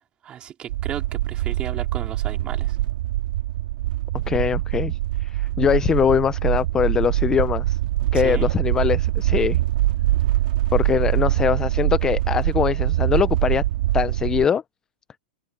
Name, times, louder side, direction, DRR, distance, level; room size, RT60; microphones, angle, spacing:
voice 1, 0.2-2.8 8.1-8.5, right 10 dB, 20° right, 3.9 m, -34 dB
sound 1, 0.7-14.4, right 15 dB, 65° right, 2.6 m, -23 dB
voice 2, 4.3-7.8 8.1-9.6 10.7-13.6 13.9-14.6, left 7 dB, 15° left, 0.3 m, -22 dB
open air
supercardioid pair, 160°, 5 cm